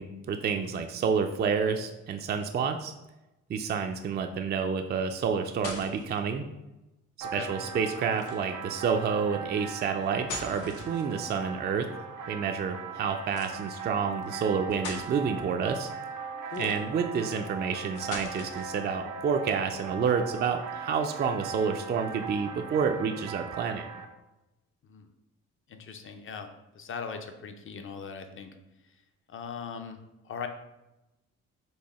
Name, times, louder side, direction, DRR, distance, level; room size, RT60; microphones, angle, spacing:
voice 1, 0.0-2.9 3.5-6.5 7.3-11.9 12.3-15.9 16.6-23.9, right 6 dB, 35° right, 5 dB, 0.4 m, -29 dB
sound 1, 5.4-6.2 8.1-8.6 10.0-11.4 13.3-13.5 14.2-14.3 14.7-15.1 16.4-17.1 17.9-18.8, left 3 dB, 75° left, 0.9 m, -41 dB
sound 2, 7.2-24.1, right 5 dB, 85° right, 0.7 m, -39 dB
voice 2, 16.4-16.8 24.8-25.1 25.7-26.5 26.7-28.5 29.3-30.0 30.2-30.5, left 6 dB, 40° left, 7 dB, 0.6 m, -39 dB
4.6 x 2.6 x 4.1 m, 0.97 s
cardioid pair, 90°, 30 cm